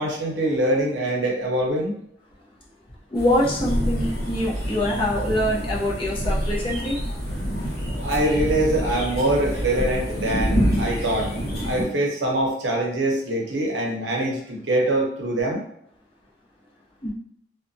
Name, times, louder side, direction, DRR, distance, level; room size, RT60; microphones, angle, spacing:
voice 1, 0.0-1.9 8.0-11.3 11.6-15.6, right 1 dB, 75° right, -1 dB, 0.7 m, -24 dB
voice 2, 3.1-7.0 17.0-17.1, left 1 dB, 30° left, -4 dB, 0.6 m, -24 dB
sound 1, 3.2-11.8, equal, 50° left, 1.1 m, -27 dB
2.8 x 2.2 x 2.6 m, 0.71 s
head